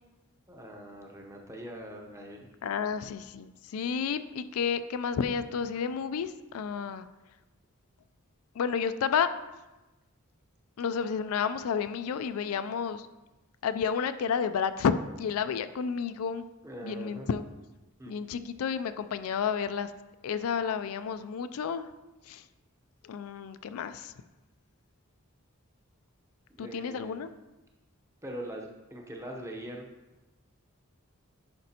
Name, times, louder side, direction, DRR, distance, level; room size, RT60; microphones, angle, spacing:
voice 1, 0.5-2.5 16.6-17.3 18.0-18.2 26.5-27.3 28.2-29.9, right 1 dB, 15° right, 0 dB, 0.7 m, -42 dB
voice 2, 2.6-7.1 8.6-9.3 10.8-13.1 13.6-16.4 16.8-17.5 18.1-19.9 20.2-21.9 22.3-22.4 23.0-24.1 26.6-27.3, left 6 dB, 75° left, 11 dB, 0.3 m, -31 dB
10.5 x 5.1 x 2.8 m, 1.1 s
head